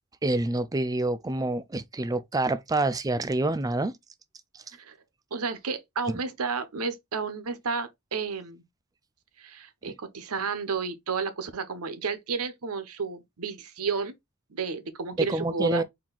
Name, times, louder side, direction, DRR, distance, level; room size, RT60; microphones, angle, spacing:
voice 1, 0.2-4.0 4.5-4.6 15.2-15.8, right 2 dB, 15° right, 0.4 m, -27 dB
voice 2, 5.3-8.6 9.4-14.1 14.5-15.8, right 5 dB, 80° right, 0.9 m, -32 dB
4.5 x 2.8 x 3.8 m
head